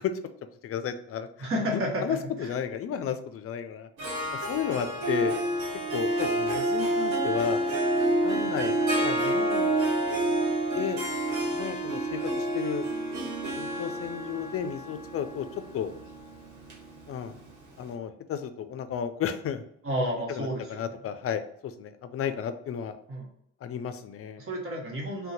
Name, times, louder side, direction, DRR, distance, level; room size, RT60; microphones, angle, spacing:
voice 1, 0.6-3.9 4.5-5.3 5.9-7.6 8.2-9.8 10.7-11.0 11.5-12.9 13.5-15.5 15.7-15.9 17.1-17.4 17.8-19.6 20.3-23.0 23.6-24.4, left 8 dB, 50° left, 10 dB, 0.4 m, -33 dB
voice 2, 1.4-2.5 19.8-20.8 23.1-23.2 24.4-25.3, equal, 45° right, -1 dB, 1.1 m, -31 dB
Harp, 4.0-17.5, right 1 dB, 70° right, 1.2 m, -28 dB
2.7 x 2.2 x 3.9 m, 0.74 s
cardioid pair, 90°, 30 cm